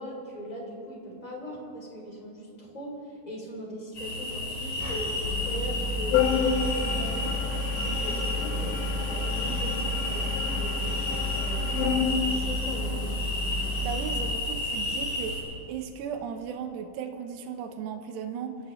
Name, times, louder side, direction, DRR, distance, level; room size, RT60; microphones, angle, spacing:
voice 1, 0.0-5.1 5.4-7.4 7.7-13.1, equal, 10° left, -2 dB, 2.6 m, -40 dB
sound 1, 3.9-15.4, left 2 dB, 55° left, 6.6 m, -32 dB
sound 2, 4.8-7.2, left 1 dB, 15° right, 1.2 m, -43 dB
Organ, 5.2-14.3, left 3 dB, 85° left, 3.0 m, -29 dB
voice 2, 13.5-15.3 15.7-18.6, right 7 dB, 80° right, 5 dB, 3.2 m, -36 dB
29.0 x 14.5 x 3.2 m, 2.7 s
omnidirectional pair, 4.8 m